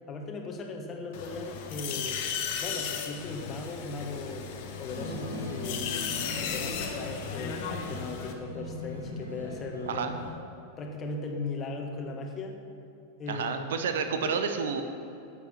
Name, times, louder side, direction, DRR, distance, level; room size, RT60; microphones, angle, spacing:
voice 1, 0.1-2.2 2.6-4.5 4.8-5.9 6.4-10.1 10.8-12.6 13.2-13.7 14.2-14.4, left 3 dB, 25° left, 3 dB, 1.6 m, -38 dB
sound 1, 1.1-8.3, left 7 dB, 45° left, 1.2 m, -36 dB
sound 2, 4.9-10.3, left 1 dB, 85° left, 2.2 m, -39 dB
voice 2, 13.3-14.8, right 6 dB, 60° right, 7 dB, 0.8 m, -30 dB
11.5 x 8.3 x 6.0 m, 2.7 s
figure-of-eight pair, 90°, 0 cm